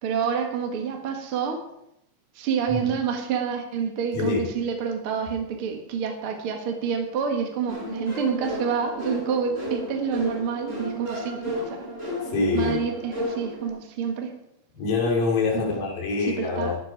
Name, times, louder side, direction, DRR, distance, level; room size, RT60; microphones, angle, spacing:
voice 1, 0.0-1.6 2.3-11.9 12.5-14.3 15.5-15.8 16.3-16.7, right 6 dB, 45° right, 2 dB, 2.0 m, -28 dB
voice 2, 4.1-4.5 12.3-12.8 14.7-16.8, left 4 dB, 70° left, -2 dB, 4.6 m, -25 dB
sound 1, 7.7-13.7, equal, 20° right, 4.6 m, -33 dB
13.5 x 10.0 x 4.7 m, 0.81 s
omnidirectional pair, 4.2 m